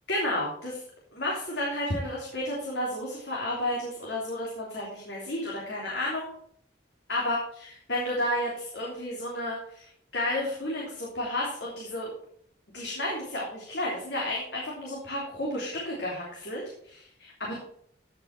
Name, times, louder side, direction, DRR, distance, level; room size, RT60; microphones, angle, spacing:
voice 1, 0.1-0.8 1.1-6.3 7.1-12.1 12.7-17.5, left 1 dB, 70° left, -4 dB, 3.2 m, -32 dB
15.0 x 5.9 x 4.8 m, 0.65 s
head